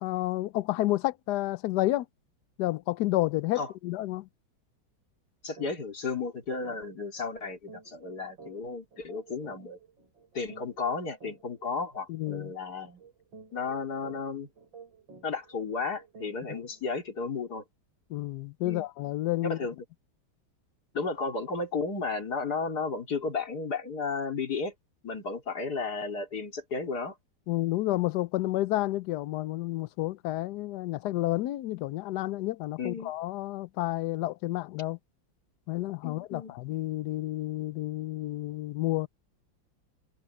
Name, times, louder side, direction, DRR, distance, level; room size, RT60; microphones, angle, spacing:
voice 1, 0.0-2.1 2.6-4.3 12.1-12.5 18.1-19.6 27.5-35.0 35.7-39.1, left 16 dB, 70° left, 1.0 m, -30 dB
voice 2, 5.4-9.8 10.3-13.0 13.5-14.5 15.2-17.6 18.6-18.9 19.5-19.8 20.9-24.7 25.0-27.1 32.8-33.1 36.0-36.6, left 4 dB, 50° left, 3.7 m, -33 dB
sound 1, 5.6-5.8 6.1-6.2 6.6-16.9, right 5 dB, 70° right, 7.3 m, -52 dB
omnidirectional pair, 2.2 m